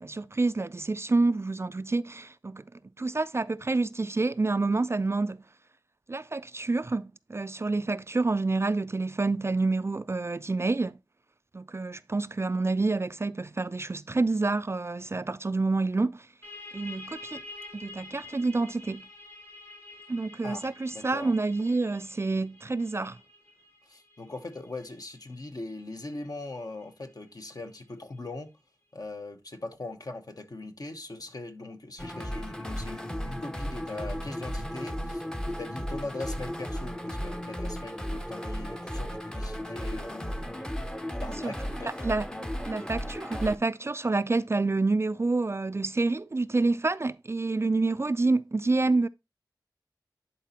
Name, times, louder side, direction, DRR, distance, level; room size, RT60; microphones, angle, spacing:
voice 1, 0.0-2.6 3.0-5.4 6.1-11.0 11.5-16.3 16.7-17.4 17.7-19.0 20.1-23.2 41.4-41.5 42.0-42.3 42.7-49.1, right 3 dB, 35° right, 0.3 m, -28 dB
sound 1, 16.4-27.8, left 2 dB, 40° left, 4.9 m, -49 dB
voice 2, 20.4-21.3 23.8-28.5 28.9-40.7 41.1-42.1, left 2 dB, 55° left, 1.1 m, -40 dB
sound 2, 32.0-43.6, equal, 10° left, 0.7 m, -35 dB
11.0 x 4.2 x 2.9 m
wide cardioid pair, 50°, 8 cm